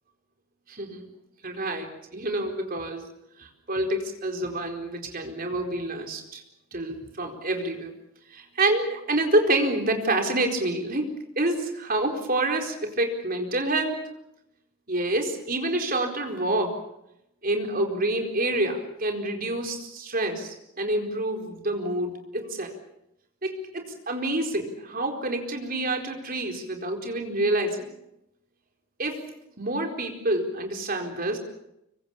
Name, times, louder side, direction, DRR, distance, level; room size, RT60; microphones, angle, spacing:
voice 1, 0.7-1.1 1.4-1.9 2.1-3.1 3.4-6.4 6.7-7.9 8.3-11.1 11.4-14.0 14.9-16.8 17.4-22.8 23.4-27.9 29.0-29.2 29.6-31.4, right 1 dB, 40° right, 3 dB, 4.4 m, -27 dB
25.5 x 24.0 x 7.3 m, 0.84 s
head